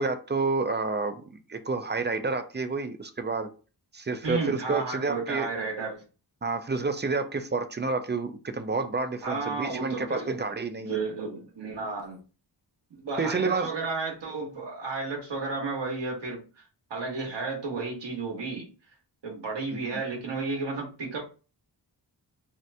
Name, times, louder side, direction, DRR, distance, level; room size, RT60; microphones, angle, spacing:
voice 1, 0.0-3.5 3.9-5.5 6.4-11.0 13.2-13.7 19.7-19.8, right 3 dB, 25° right, 9 dB, 0.4 m, -29 dB
voice 2, 4.2-6.0 9.2-10.3 10.8-12.2 12.9-16.4 16.9-18.6 19.2-21.2, right 4 dB, 75° right, -1 dB, 1.1 m, -32 dB
2.8 x 2.5 x 3.2 m, 0.35 s
wide cardioid pair, 80°, 43 cm